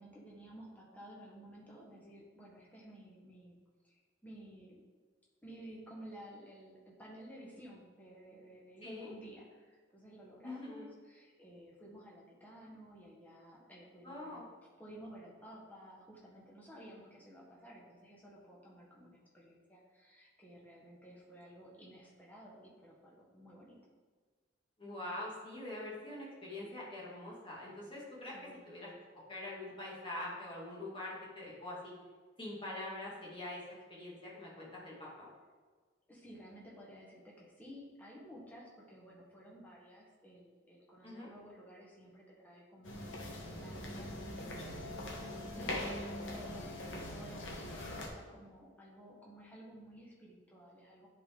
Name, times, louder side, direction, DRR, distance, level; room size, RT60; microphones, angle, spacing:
voice 1, 0.0-3.6 3.8-4.8 5.4-14.4 14.8-23.8 28.3-28.6 36.1-51.1, equal, 10° left, -4 dB, 1.4 m, -54 dB
voice 2, 8.8-9.1 10.4-10.9 14.0-14.5 24.8-28.4 28.7-28.9 29.3-31.9 32.4-33.6 33.9-35.3 41.0-41.3 46.3-46.6, left 1 dB, 25° left, -5 dB, 2.1 m, -44 dB
sound 1, 42.8-48.1, left 1 dB, 80° left, 1.2 m, -42 dB
10.5 x 4.0 x 3.7 m, 1.5 s
head